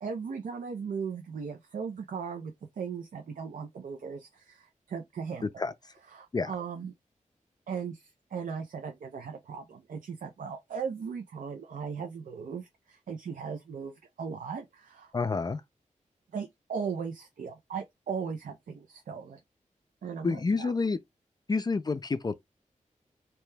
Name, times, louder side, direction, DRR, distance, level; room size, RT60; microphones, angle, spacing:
voice 1, 0.0-5.5 6.1-6.9 7.7-15.1 16.3-19.4 20.0-20.7, right 6 dB, 90° right, 0.5 m, -38 dB
voice 2, 5.4-5.7 6.3-6.5 15.1-15.6 20.2-21.0 21.5-22.3, left 4 dB, 30° left, 0.3 m, -28 dB
2.8 x 2.2 x 3.2 m
wide cardioid pair, 85°, 13 cm